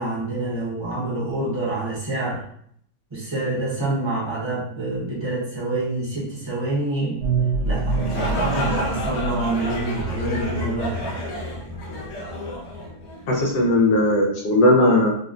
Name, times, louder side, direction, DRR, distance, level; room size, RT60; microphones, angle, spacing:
voice 1, 0.0-2.4 3.1-7.2 7.6-11.2, right 2 dB, 20° right, -7 dB, 1.0 m, -27 dB
sound 1, 7.2-14.2, right 3 dB, 55° right, 1.0 m, -29 dB
sound 2, 7.8-13.5, equal, 60° left, 0.7 m, -30 dB
voice 2, 13.3-15.1, left 1 dB, 75° left, -2 dB, 1.4 m, -17 dB
4.0 x 2.2 x 2.5 m, 0.67 s
omnidirectional pair, 1.8 m